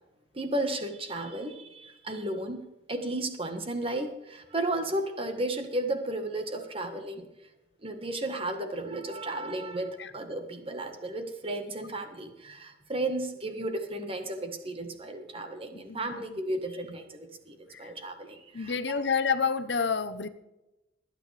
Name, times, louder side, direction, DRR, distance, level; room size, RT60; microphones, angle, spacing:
voice 1, 0.3-7.3 7.8-19.0, right 1 dB, 30° right, 6 dB, 1.5 m, -34 dB
voice 2, 15.7-16.3 17.8-17.9 18.5-20.3, left 5 dB, 70° left, 11 dB, 0.8 m, -29 dB
22.5 x 9.2 x 3.4 m, 0.99 s
head